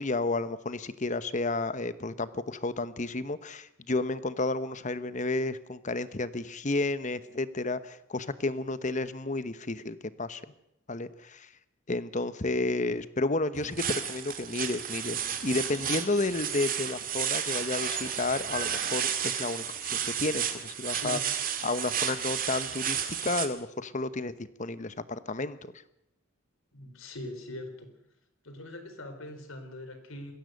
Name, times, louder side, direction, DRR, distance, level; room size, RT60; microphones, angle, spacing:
voice 1, 0.0-10.4 10.9-11.5 11.9-21.2 21.6-25.7, left 2 dB, 35° left, 14 dB, 1.0 m, -31 dB
sound 1, 13.5-23.5, right 9 dB, 45° right, 2.1 m, -32 dB
voice 2, 26.7-27.9 28.4-30.3, left 1 dB, 80° left, 7 dB, 4.1 m, -41 dB
21.5 x 16.0 x 7.9 m, 0.80 s
head